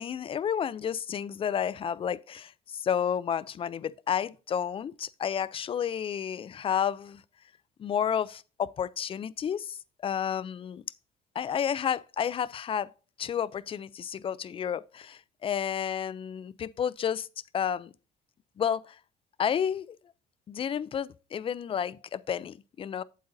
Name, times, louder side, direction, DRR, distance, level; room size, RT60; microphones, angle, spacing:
voice 1, 0.0-7.2 7.8-9.8 10.0-10.8 11.4-12.9 13.2-17.3 17.5-17.9 18.6-19.0 19.4-20.0 20.5-23.0, left 8 dB, 35° left, 0.4 m, -31 dB
8.3 x 7.9 x 2.6 m
cardioid pair, 110°, 17 cm